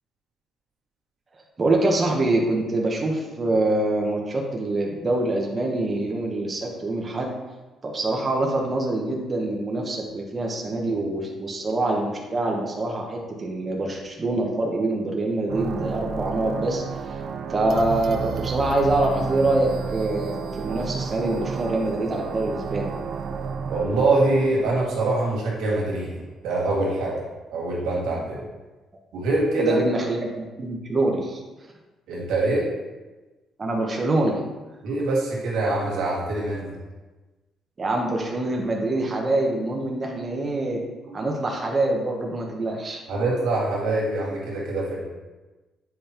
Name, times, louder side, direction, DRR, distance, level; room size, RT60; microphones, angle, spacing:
voice 1, 1.6-7.3 7.8-17.2 17.5-22.9 29.6-31.4 33.6-34.4 37.8-40.8 41.1-43.0, right 2 dB, 30° right, -1 dB, 0.9 m, -25 dB
sound 1, 15.5-26.1, right 6 dB, 60° right, 0.5 m, -32 dB
voice 2, 23.7-27.2 27.5-28.5 29.1-29.8 32.1-32.7 34.8-36.8 41.0-41.1 43.1-45.0, right 2 dB, 90° right, -4 dB, 2.0 m, -24 dB
7.7 x 5.1 x 2.9 m, 1.2 s
cardioid pair, 105°, 0 cm